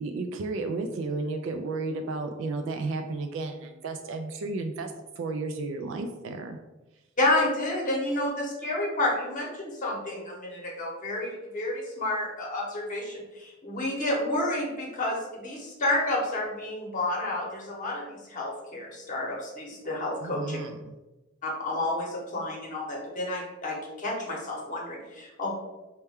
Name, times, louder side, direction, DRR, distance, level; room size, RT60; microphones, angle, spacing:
voice 1, 0.0-6.6 20.2-20.9, right 3 dB, 65° right, 5 dB, 0.3 m, -33 dB
voice 2, 7.2-20.6 21.4-25.5, left 1 dB, 40° left, -2 dB, 0.9 m, -30 dB
4.3 x 2.2 x 3.5 m, 1.1 s
head